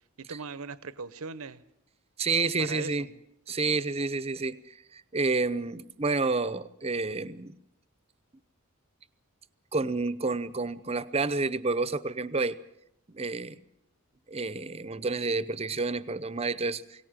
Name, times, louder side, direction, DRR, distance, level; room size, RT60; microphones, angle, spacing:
voice 1, 0.2-1.6 2.6-3.1, right 4 dB, 75° right, 1.0 m, -40 dB
voice 2, 2.2-3.1 3.5-7.6 9.7-12.6 13.1-13.6 14.3-16.8, right 3 dB, 30° right, 0.8 m, -29 dB
23.0 x 18.0 x 7.5 m
head